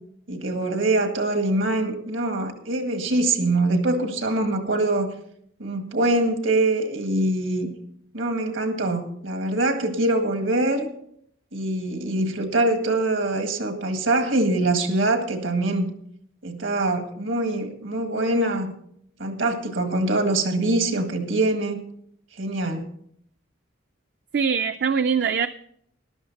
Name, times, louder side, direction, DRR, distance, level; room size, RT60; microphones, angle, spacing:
voice 1, 0.3-5.1 5.6-7.7 8.1-10.9 11.5-15.9 16.4-18.7 19.2-21.8 22.4-22.9, right 2 dB, 80° right, 5 dB, 1.9 m, -24 dB
voice 2, 24.3-25.5, right 6 dB, 55° right, 9 dB, 0.4 m, -22 dB
13.5 x 12.0 x 4.0 m, 0.69 s
head